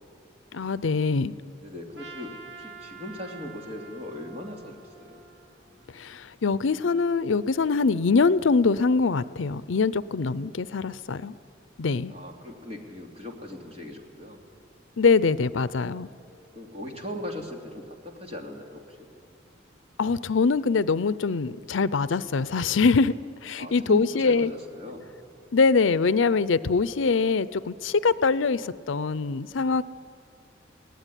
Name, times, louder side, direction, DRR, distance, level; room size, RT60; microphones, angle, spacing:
voice 1, 0.5-1.3 5.9-11.3 11.8-12.1 15.0-16.1 20.0-23.1 23.4-24.5 25.5-29.8, left 4 dB, 75° left, 16 dB, 0.6 m, -23 dB
voice 2, 1.6-5.2 12.1-14.4 16.5-19.1 23.6-25.1 26.8-27.0 28.1-28.3, left 1 dB, 30° right, 1 dB, 2.8 m, -39 dB
Trumpet, 2.0-6.3, right 4 dB, 65° right, 1.9 m, -47 dB
22.5 x 18.0 x 10.0 m, 2.4 s
head